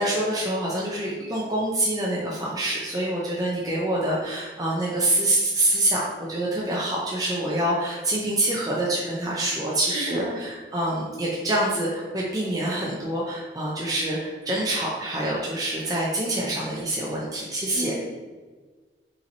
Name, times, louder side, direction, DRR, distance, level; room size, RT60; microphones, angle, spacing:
voice 1, 0.0-6.0 6.3-17.9, right 1 dB, 20° right, -4 dB, 0.5 m, -26 dB
voice 2, 9.8-10.4 17.7-17.9, right 1 dB, 60° right, -5 dB, 1.4 m, -32 dB
5.7 x 2.8 x 2.7 m, 1.4 s
head